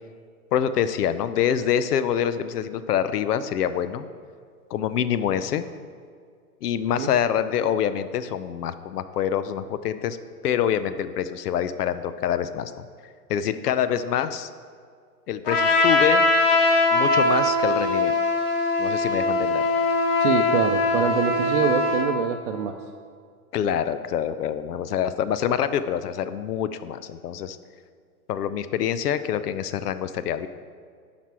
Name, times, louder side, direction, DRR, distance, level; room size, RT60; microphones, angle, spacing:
voice 1, 0.5-4.1 4.7-5.6 6.6-10.2 10.4-12.9 13.3-14.5 15.3-16.2 16.9-18.2 18.8-19.7 23.5-27.6 28.3-30.5, left 9 dB, 75° left, 13 dB, 0.7 m, -26 dB
Trumpet, 15.5-22.1, left 2 dB, 25° left, 1.1 m, -21 dB
voice 2, 20.2-22.7, right 8 dB, 50° right, 2 dB, 0.6 m, -25 dB
10.5 x 6.0 x 4.7 m, 2.1 s
hypercardioid pair, 155°, 46 cm